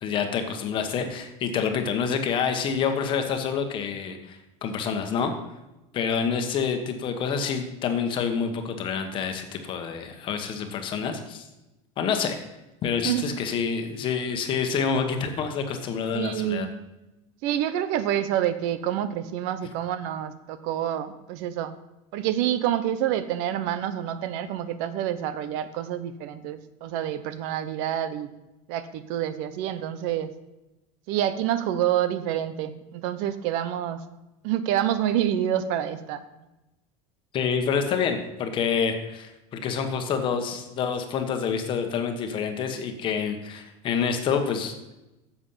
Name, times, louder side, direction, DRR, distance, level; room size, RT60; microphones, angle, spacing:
voice 1, 0.0-5.3 5.9-11.4 12.0-12.4 12.8-16.7 37.3-44.7, left 6 dB, 35° left, 6 dB, 1.2 m, -27 dB
voice 2, 16.1-16.7 17.4-21.7 22.1-28.3 28.7-30.3 31.1-34.0 34.4-36.2, right 11 dB, 60° right, 12 dB, 0.8 m, -27 dB
10.0 x 7.3 x 5.7 m, 0.98 s
cardioid pair, 170°, 16 cm